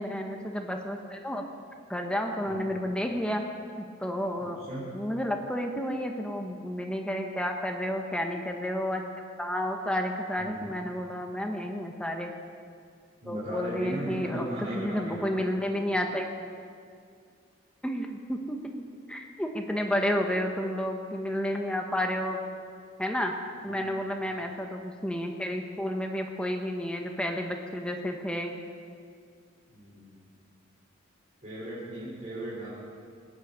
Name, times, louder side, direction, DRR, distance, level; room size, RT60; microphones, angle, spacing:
voice 1, 0.0-1.4 1.9-3.4 3.8-4.6 4.9-9.0 9.4-12.3 13.3-14.5 14.7-16.5 17.8-22.4 23.0-23.3 23.6-28.5, equal, 5° left, 2 dB, 1.0 m, -31 dB
voice 2, 4.4-4.8 10.4-10.7 13.2-15.4 23.6-24.0 29.7-30.2 31.4-32.7, right 1 dB, 40° right, -9 dB, 4.2 m, -37 dB
19.5 x 9.8 x 6.8 m, 2.2 s
head